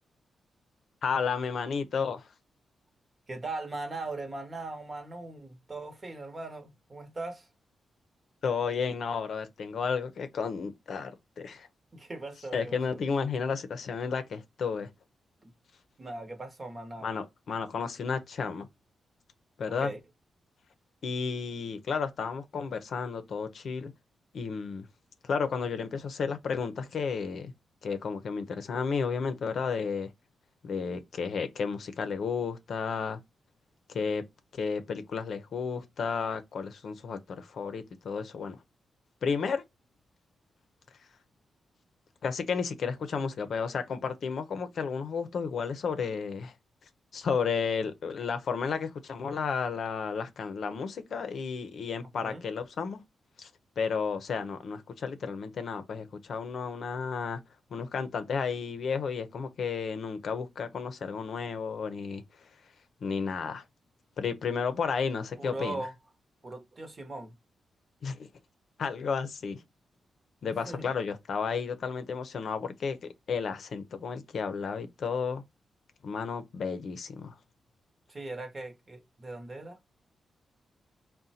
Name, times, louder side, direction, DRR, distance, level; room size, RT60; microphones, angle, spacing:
voice 1, 1.0-2.3 8.4-11.1 11.4-11.7 12.5-14.9 17.0-18.7 19.6-19.9 21.0-23.9 24.3-24.9 25.2-27.5 27.8-30.1 30.6-33.2 33.9-34.2 34.5-38.6 39.2-39.6 42.2-46.5 47.1-53.0 53.4-53.5 53.8-57.4 57.7-62.2 63.0-63.6 64.2-65.8 68.0-68.3 68.8-69.6 70.4-73.0 73.3-75.4 76.0-77.3, left 5 dB, 70° left, 0.6 m, -32 dB
voice 2, 3.3-7.5 11.9-13.0 15.4-15.5 16.0-17.1 19.8-20.0 50.7-50.8 52.2-52.4 65.4-65.9 66.4-67.3 70.6-70.9 78.1-79.8, right 2 dB, 35° right, 1.0 m, -39 dB
3.8 x 2.2 x 4.1 m
cardioid pair, 80°, 0 cm